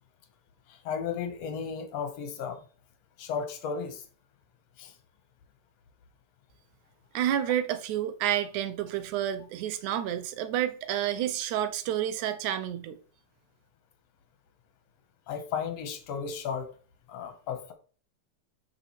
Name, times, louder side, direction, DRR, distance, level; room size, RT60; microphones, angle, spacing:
voice 1, 0.9-2.6 3.2-4.0 4.8-4.9 15.3-16.7 17.1-17.7, left 6 dB, 60° left, 2.2 m, -34 dB
voice 2, 7.1-13.0, right 11 dB, 70° right, 2.2 m, -29 dB
7.6 x 6.9 x 4.5 m
omnidirectional pair, 3.9 m